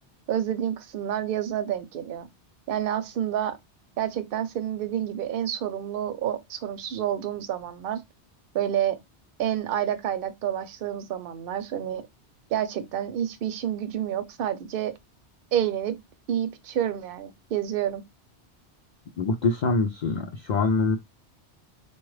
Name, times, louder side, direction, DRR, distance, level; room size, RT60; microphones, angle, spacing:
voice 1, 0.3-2.3 2.7-3.6 4.0-8.0 8.5-9.0 9.4-12.0 12.5-14.9 15.5-15.9 16.3-18.0, right 10 dB, 60° right, 0.7 m, -29 dB
voice 2, 19.2-21.0, left 3 dB, 55° left, 0.5 m, -24 dB
4.4 x 2.3 x 3.1 m
omnidirectional pair, 1.2 m